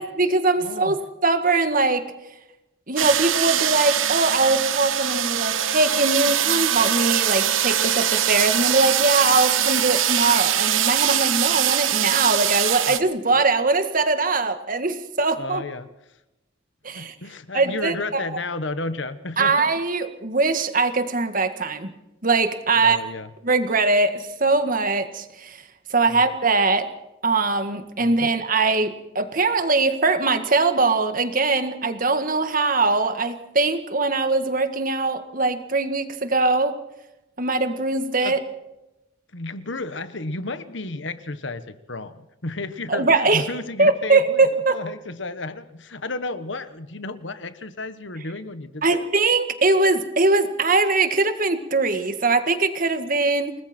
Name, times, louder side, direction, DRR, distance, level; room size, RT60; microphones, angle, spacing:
voice 1, 0.0-2.1 2.9-15.6 16.8-17.1 17.5-18.2 19.4-21.9 22.2-23.0 23.4-25.6 25.9-26.9 27.2-36.8 37.4-38.4 42.9-43.5 43.8-44.8 48.8-53.6, right 3 dB, 45° right, 9 dB, 1.8 m, -21 dB
voice 2, 0.6-1.0 12.9-13.0 15.4-15.9 16.9-19.7 22.7-23.3 26.1-26.2 28.0-28.3 38.2-38.4 39.3-49.1, left 2 dB, 65° left, 12 dB, 1.3 m, -32 dB
sound 1, 3.0-13.0, right 10 dB, 80° right, 1.2 m, -22 dB
29.0 x 20.5 x 4.5 m, 0.94 s
head